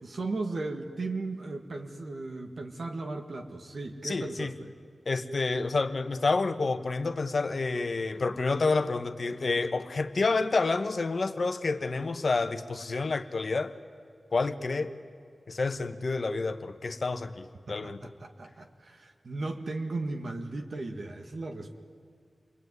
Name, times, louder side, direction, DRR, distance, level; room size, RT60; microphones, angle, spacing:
voice 1, 0.0-4.7 17.7-21.8, right 3 dB, 65° right, 3 dB, 1.8 m, -36 dB
voice 2, 4.0-4.5 5.0-13.7 14.3-14.9 15.5-18.0, left 3 dB, 60° left, 8 dB, 1.3 m, -29 dB
28.5 x 21.5 x 9.6 m, 2.1 s
wide cardioid pair, 90°, 0 cm